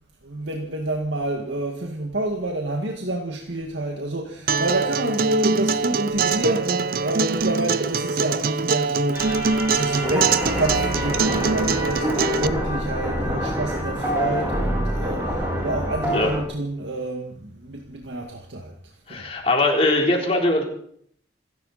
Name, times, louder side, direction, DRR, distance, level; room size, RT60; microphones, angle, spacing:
voice 1, 0.2-18.7 19.1-19.3, right 1 dB, 80° right, 2.0 m, -28 dB
Acoustic guitar, 4.5-12.5, right 5 dB, 50° right, 0.6 m, -23 dB
sound 1, 9.1-16.4, equal, 15° right, 4.2 m, -26 dB
voice 2, 19.1-20.6, left 2 dB, 35° left, 3.8 m, -21 dB
27.5 x 11.5 x 4.3 m
head